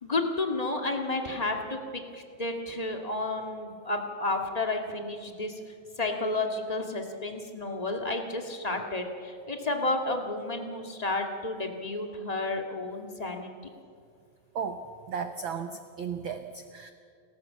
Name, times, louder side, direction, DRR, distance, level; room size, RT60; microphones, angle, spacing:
voice 1, 0.0-5.5 6.0-13.5, left 2 dB, 20° left, 3 dB, 1.3 m, -31 dB
voice 2, 14.5-16.9, right 6 dB, 80° right, 8 dB, 1.1 m, -35 dB
30.0 x 14.0 x 7.4 m, 2.2 s
omnidirectional pair, 3.4 m